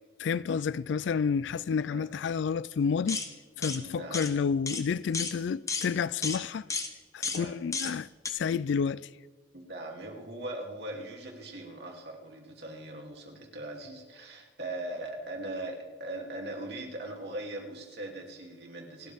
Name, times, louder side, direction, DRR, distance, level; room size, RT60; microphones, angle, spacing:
voice 1, 0.2-3.2 3.6-6.7 7.1-9.1, left 6 dB, 75° left, 0.3 m, -30 dB
sound 1, 3.1-3.3 3.6-3.8 4.1-4.3 4.7-4.8 5.1-5.3 5.7-5.9 6.2-6.4 6.7-6.9 7.2-7.4 7.7-7.9 8.2-8.3, left 4 dB, 15° left, 1.1 m, -32 dB
voice 2, 3.8-4.3 7.2-7.5 9.5-19.1, right 1 dB, 65° right, 2.9 m, -40 dB
28.5 x 13.0 x 3.6 m
head